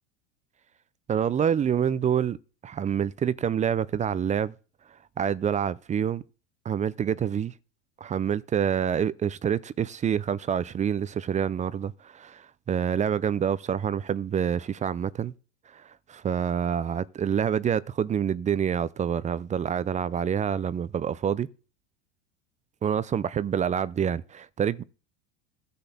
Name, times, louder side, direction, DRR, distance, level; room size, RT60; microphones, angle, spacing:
voice 1, 1.1-2.4 2.6-4.5 5.2-6.2 6.7-7.5 8.0-15.3 15.7-15.8 16.1-21.5 22.8-24.8, right 8 dB, 20° right, 0.5 m, -27 dB
12.0 x 4.1 x 7.0 m
hypercardioid pair, 90°, 33 cm